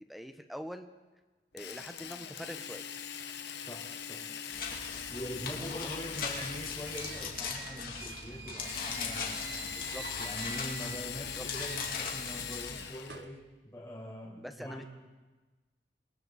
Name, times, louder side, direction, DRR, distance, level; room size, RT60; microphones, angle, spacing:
voice 1, 0.1-0.9 1.5-2.8 5.6-6.0 9.8-10.0 11.4-11.5 14.4-14.8, equal, ahead, 7 dB, 1.0 m, -44 dB
Drill, 1.6-7.6 8.6-13.3, left 8 dB, 75° left, 1.2 m, -41 dB
voice 2, 3.7-4.3 5.1-14.9, equal, 15° left, -4 dB, 4.9 m, -43 dB
sound 1, 4.5-12.8, left 5 dB, 55° left, 2.8 m, -40 dB
sound 2, 6.7-11.1 11.5-13.4, right 6 dB, 70° right, 1.0 m, -48 dB
28.0 x 22.0 x 4.3 m, 1.2 s
head